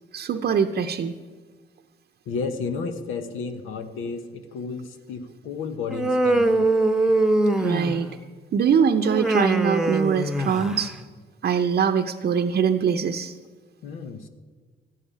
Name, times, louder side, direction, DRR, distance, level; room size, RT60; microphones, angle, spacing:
voice 1, 0.1-1.2 7.6-8.1 8.5-10.9 11.4-13.3, right 7 dB, 55° right, 4 dB, 0.7 m, -22 dB
voice 2, 2.3-6.7 13.8-14.3, left 4 dB, 85° left, 8 dB, 1.0 m, -32 dB
Human voice, 5.9-8.2 9.0-10.9, right 2 dB, 5° right, 0.9 m, -22 dB
13.5 x 7.3 x 10.0 m, 1.5 s
cardioid pair, 90°, 20 cm